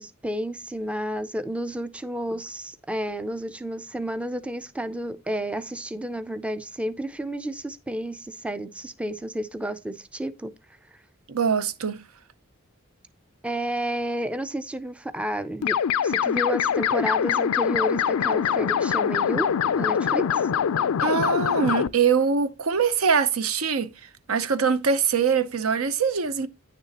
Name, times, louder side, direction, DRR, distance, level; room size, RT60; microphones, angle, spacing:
voice 1, 0.0-10.5 13.4-15.8 16.0-20.5, equal, 5° right, 0.4 m, -31 dB
voice 2, 11.3-12.0 21.0-23.9 24.3-26.5, right 6 dB, 80° right, 0.7 m, -23 dB
sound 1, 15.6-21.9, left 8 dB, 85° left, 0.4 m, -23 dB
9.7 x 6.8 x 2.9 m
head